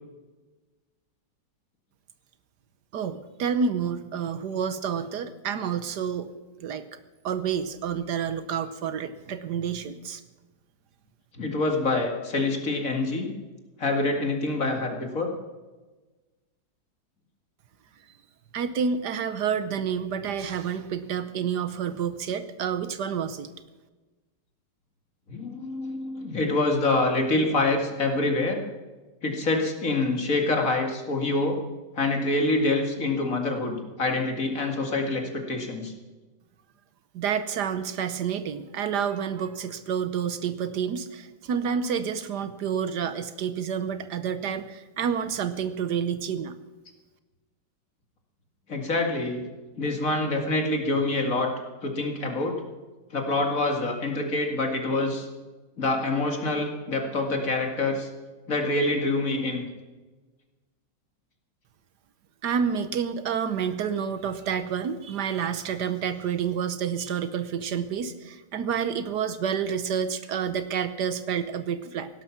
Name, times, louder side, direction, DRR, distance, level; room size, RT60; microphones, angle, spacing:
voice 1, 2.9-6.3 6.6-6.8 7.2-10.2 18.5-23.5 37.1-46.6 62.4-72.1, right 7 dB, 70° right, 12 dB, 1.4 m, -29 dB
voice 2, 11.4-13.3 13.8-15.3 25.3-28.6 29.2-31.6 32.0-35.9 48.7-49.4 49.8-51.5 51.8-52.6 53.1-55.3 55.8-58.1 58.5-59.6, left 2 dB, 50° left, 3 dB, 2.6 m, -26 dB
17.0 x 12.0 x 5.9 m, 1.2 s
omnidirectional pair, 1.9 m